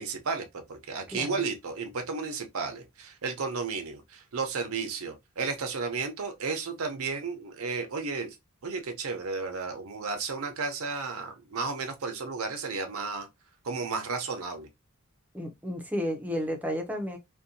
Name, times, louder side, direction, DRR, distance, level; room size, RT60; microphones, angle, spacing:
voice 1, 0.0-8.4 8.6-13.3 13.6-14.7, right 4 dB, 80° right, 0.6 m, -33 dB
voice 2, 1.1-1.4 15.3-17.2, equal, 5° right, 0.5 m, -32 dB
2.6 x 2.2 x 2.5 m
head